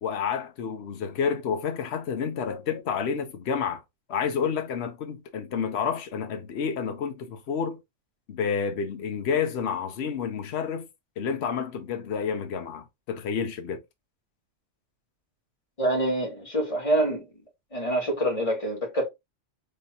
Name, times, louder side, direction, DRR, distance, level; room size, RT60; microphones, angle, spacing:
voice 1, 0.0-3.8 4.1-7.8 8.3-10.9 11.2-13.8, left 6 dB, 55° left, 1.0 m, -29 dB
voice 2, 15.8-17.2 17.7-19.0, right 1 dB, 25° left, 1.6 m, -26 dB
3.9 x 3.3 x 2.8 m
omnidirectional pair, 1.4 m